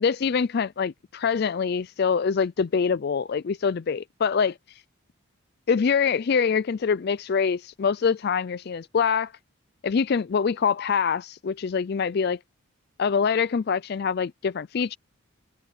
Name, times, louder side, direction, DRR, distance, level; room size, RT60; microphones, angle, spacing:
voice 1, 0.0-4.8 5.7-9.3 9.8-12.4 13.0-15.0, left 6 dB, 50° left, 0.4 m, -24 dB
head